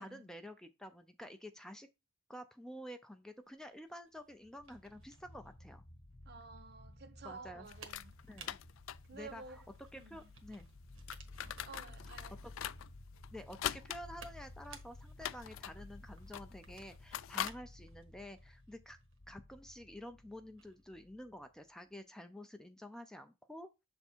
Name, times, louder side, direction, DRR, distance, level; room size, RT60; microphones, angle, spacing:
voice 1, 0.0-1.9 2.3-5.8 7.2-7.7 8.3-8.6 9.1-9.6 9.9-10.7 12.4-12.5 13.3-19.0 19.3-23.7, equal, 5° left, 0.4 m, -50 dB
sound 1, 3.5-20.8, right 5 dB, 85° right, 1.3 m, -61 dB
sound 2, 4.3-21.7, left 1 dB, 40° left, 0.9 m, -56 dB
voice 2, 6.3-8.1 9.0-9.7 9.9-10.3 11.6-12.4, right 4 dB, 55° right, 0.8 m, -52 dB
sound 3, 7.7-17.5, left 11 dB, 75° left, 0.3 m, -45 dB
7.0 x 3.5 x 4.3 m
head